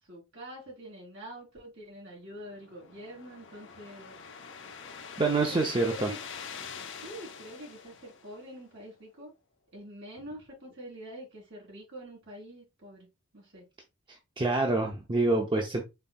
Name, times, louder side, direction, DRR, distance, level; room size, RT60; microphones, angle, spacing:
voice 1, 0.1-4.1 5.2-6.2 7.0-9.3 9.7-13.1 13.3-13.7, right 1 dB, 60° right, 3.2 m, -46 dB
sound 1, 2.2-8.7, left 6 dB, 60° left, 0.8 m, -45 dB
voice 2, 5.2-6.1 14.4-15.8, right 3 dB, 25° right, 0.6 m, -26 dB
5.5 x 4.0 x 2.3 m
head